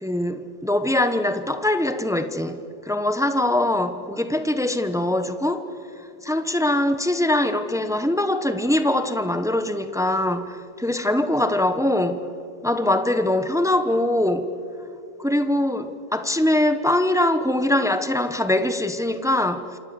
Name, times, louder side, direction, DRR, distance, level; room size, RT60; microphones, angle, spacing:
voice 1, 0.0-2.6 2.8-5.7 6.2-12.3 12.6-14.5 15.2-19.8, left 1 dB, 5° right, 0.5 m, -22 dB
29.0 x 27.0 x 7.0 m
omnidirectional pair, 2.0 m